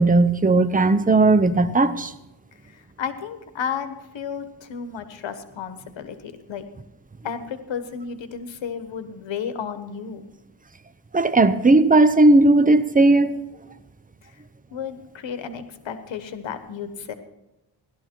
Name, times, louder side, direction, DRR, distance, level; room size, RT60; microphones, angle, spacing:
voice 1, 0.0-2.1 11.1-13.4, right 2 dB, 20° right, 0.9 m, -16 dB
voice 2, 2.6-6.7 7.2-10.3 14.7-17.1, left 7 dB, 90° left, 1.3 m, -33 dB
16.5 x 12.5 x 4.6 m
cardioid pair, 75°, 44 cm